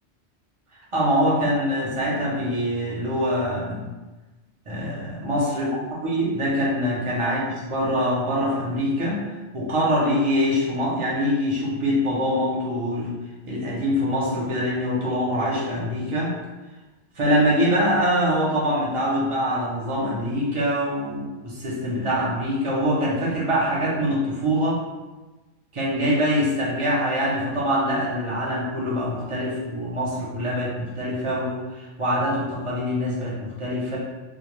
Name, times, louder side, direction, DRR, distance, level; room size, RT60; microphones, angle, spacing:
voice 1, 0.9-3.8 4.7-5.8 6.0-9.2 9.5-13.1 13.5-16.3 17.2-24.8 25.7-34.0, equal, 40° right, -5 dB, 0.5 m, -24 dB
2.1 x 2.0 x 3.0 m, 1.2 s
omnidirectional pair, 1.1 m